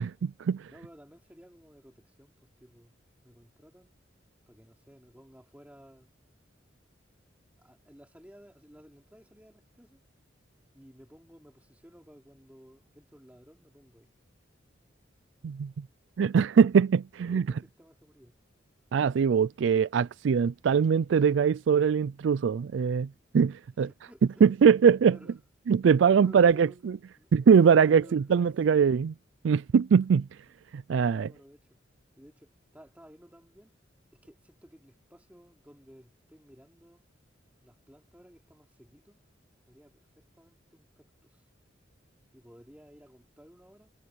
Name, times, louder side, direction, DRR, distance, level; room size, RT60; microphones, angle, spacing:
voice 1, 0.0-0.6 15.4-15.7 16.2-17.4 18.9-23.1 23.3-23.9 24.4-25.2 25.7-26.9 27.3-29.1 29.4-30.3 30.7-31.3, right 6 dB, 75° right, 0.3 m, -22 dB
voice 2, 0.7-2.9 3.2-3.9 4.5-6.1 7.6-10.0 10.7-14.1 17.3-18.4 23.8-24.4 25.1-25.3 26.1-26.8 27.2-27.3 27.7-28.8 31.1-31.7 32.2-33.7 34.1-37.1 37.6-39.2 39.7-41.4 42.3-43.9, equal, 5° right, 3.9 m, -54 dB
head